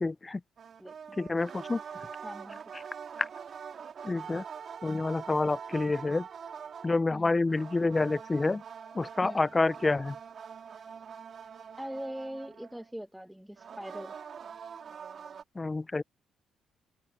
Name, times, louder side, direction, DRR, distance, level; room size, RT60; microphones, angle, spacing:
voice 1, 0.0-0.4 1.2-1.8 4.0-4.4 4.8-6.2 6.8-8.6 8.9-10.2 15.6-16.0, left 3 dB, 20° left, 0.3 m, -28 dB
sound 1, 0.6-7.0 7.5-12.9 13.6-15.4, right 7 dB, 45° right, 2.4 m, -44 dB
voice 2, 0.8-1.2 2.2-2.6 7.1-7.4 9.2-9.5 11.8-14.1, equal, ahead, 1.2 m, -41 dB
open air
cardioid pair, 120°, 0 cm